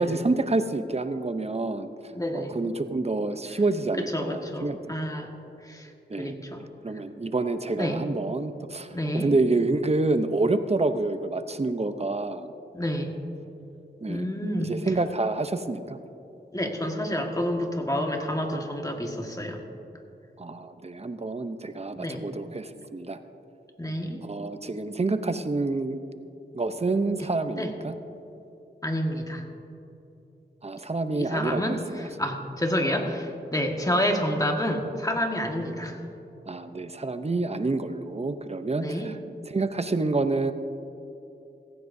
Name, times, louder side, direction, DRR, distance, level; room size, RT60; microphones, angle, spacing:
voice 1, 0.0-1.9 2.3-5.0 6.1-6.3 6.8-12.5 14.0-14.3 14.6-16.0 20.4-23.2 24.2-26.0 26.5-28.0 30.6-31.8 36.5-39.1 39.5-40.5, right 3 dB, 35° right, 10 dB, 0.7 m, -28 dB
voice 2, 2.1-2.6 4.1-5.3 5.6-5.9 6.2-6.6 7.8-8.0 8.9-9.3 12.7-13.2 14.1-14.8 16.5-19.6 22.0-22.2 23.8-24.2 27.6-27.7 28.8-29.4 31.1-36.0 38.8-39.1, equal, 20° left, 2 dB, 1.6 m, -29 dB
16.0 x 15.0 x 2.7 m, 2.9 s
wide cardioid pair, 60°, 19 cm